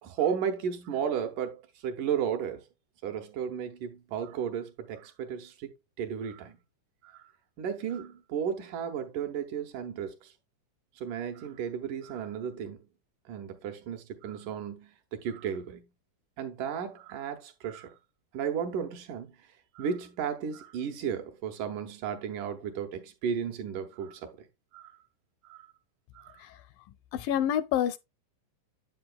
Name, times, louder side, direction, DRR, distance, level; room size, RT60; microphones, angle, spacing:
voice 1, 0.0-2.7 3.0-5.7 6.0-6.6 7.0-7.3 7.6-10.3 11.0-12.8 13.3-15.8 16.4-18.0 18.3-19.4 19.8-24.5 24.7-24.9 25.4-25.7 26.1-26.4, right 7 dB, 70° right, 2.2 m, -34 dB
voice 2, 27.1-28.0, left 10 dB, 80° left, 2.1 m, -27 dB
8.6 x 7.7 x 2.3 m
omnidirectional pair, 4.1 m